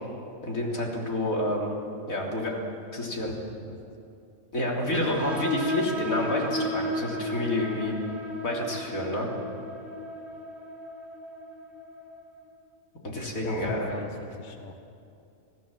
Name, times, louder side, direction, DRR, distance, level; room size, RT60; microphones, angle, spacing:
voice 1, 0.4-1.8 2.1-2.6 2.9-3.3 4.5-7.9 8.4-9.3 13.0-14.0, left 1 dB, 80° left, -2 dB, 3.9 m, -29 dB
voice 2, 3.2-3.8 7.8-8.2 13.4-14.8, left 4 dB, 35° left, 5 dB, 1.3 m, -40 dB
sound 1, 4.9-12.2, left 1 dB, ahead, 4.3 m, -34 dB
27.0 x 16.5 x 7.5 m, 2.6 s
omnidirectional pair, 1.4 m